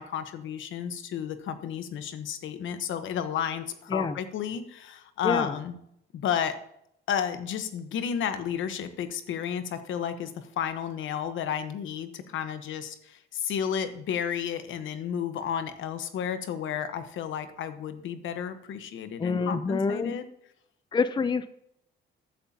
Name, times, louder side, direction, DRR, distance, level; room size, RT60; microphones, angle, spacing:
voice 1, 0.0-5.8 6.1-6.6 7.1-20.3, left 8 dB, 75° left, 10 dB, 1.0 m, -32 dB
voice 2, 5.2-5.6 19.2-20.2 20.9-21.5, left 4 dB, 25° left, 13 dB, 0.5 m, -27 dB
14.5 x 9.0 x 2.8 m, 0.75 s
cardioid pair, 90°, 20 cm